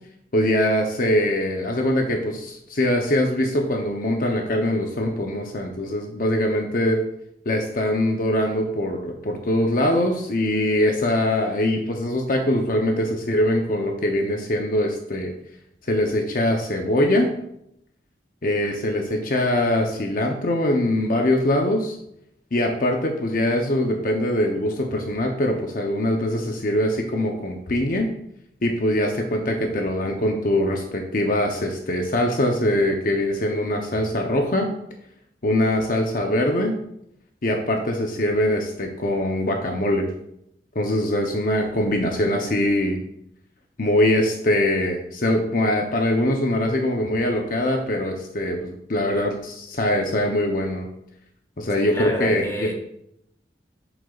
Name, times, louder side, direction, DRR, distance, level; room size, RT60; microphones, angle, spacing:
voice 1, 0.3-7.0 7.5-15.3 15.9-17.3 18.4-22.0 22.5-28.1 28.6-34.7 35.4-36.7 37.4-40.1 40.7-43.0 43.8-50.9 51.6-52.7, left 1 dB, 50° left, 2 dB, 0.8 m, -22 dB
voice 2, 51.8-52.7, equal, 15° left, 1 dB, 1.2 m, -30 dB
8.0 x 7.6 x 2.4 m, 0.77 s
head